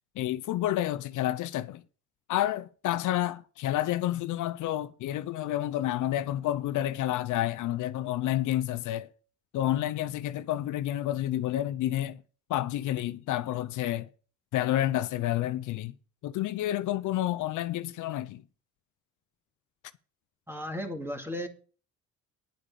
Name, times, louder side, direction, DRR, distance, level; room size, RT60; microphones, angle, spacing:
voice 1, 0.2-1.8 2.3-9.1 9.5-12.2 12.5-14.1 14.5-15.9 16.2-18.4, left 13 dB, 80° left, 0.6 m, -29 dB
voice 2, 20.5-21.5, equal, 10° right, 2.3 m, -35 dB
10.5 x 5.0 x 8.3 m
cardioid pair, 90°, 30 cm